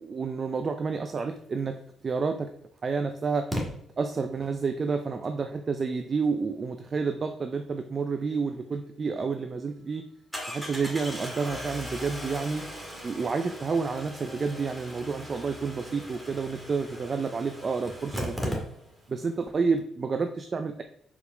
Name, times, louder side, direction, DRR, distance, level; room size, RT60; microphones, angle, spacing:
voice 1, 0.0-1.7 2.0-2.5 2.8-3.5 4.0-10.0 10.5-12.6 13.0-18.6 19.1-20.8, right 4 dB, 40° right, 7 dB, 0.6 m, -29 dB
Engine starting, 2.0-2.1 3.5-3.6 8.7-8.8 9.2-9.3 10.3-19.1 19.4-19.5 19.7-19.8, equal, ahead, 2.0 m, -37 dB
5.1 x 5.0 x 5.1 m, 0.70 s
cardioid pair, 90°, 0 cm